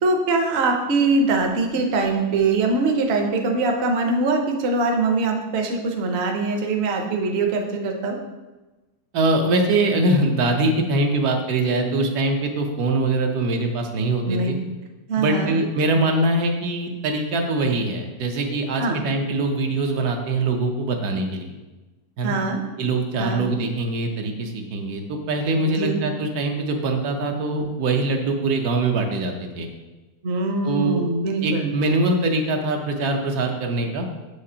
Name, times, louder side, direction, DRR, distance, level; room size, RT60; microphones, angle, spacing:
voice 1, 0.0-8.2 14.3-14.5 15.1-15.5 18.8-19.0 22.2-22.6 23.2-23.4 25.6-26.0 30.2-31.7, right 3 dB, 55° right, 3 dB, 0.8 m, -22 dB
voice 2, 9.1-14.6 15.2-21.5 22.2-22.4 22.8-29.7 30.6-31.0 31.4-34.1, right 2 dB, 80° right, 3 dB, 1.3 m, -23 dB
7.2 x 5.0 x 2.8 m, 1.1 s
omnidirectional pair, 1.6 m